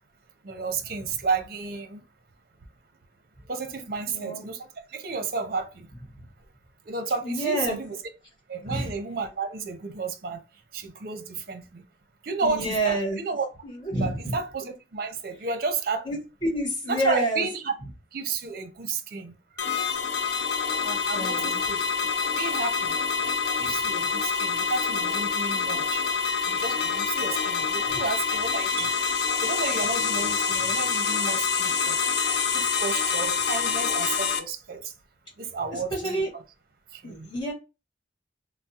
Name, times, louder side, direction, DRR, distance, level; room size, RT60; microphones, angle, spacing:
voice 1, 0.4-2.0 3.5-5.9 6.9-8.0 8.5-10.4 10.7-11.8 12.2-13.5 14.0-16.1 16.9-17.7 18.1-19.3 21.1-21.8 22.4-23.0 23.6-26.0 26.5-29.0 29.4-32.0 32.5-34.9 35.4-36.4 36.9-37.3, right 4 dB, 55° right, 0.6 m, -32 dB
voice 2, 4.1-4.5 7.2-7.8 8.6-8.9 12.4-13.2 13.8-14.3 16.0-16.2 16.4-17.5 20.8-21.6 35.9-36.3 37.0-37.5, right 1 dB, 25° left, 1.5 m, -28 dB
sound 1, 19.6-34.4, left 5 dB, 70° left, 0.5 m, -26 dB
3.5 x 2.0 x 2.8 m
head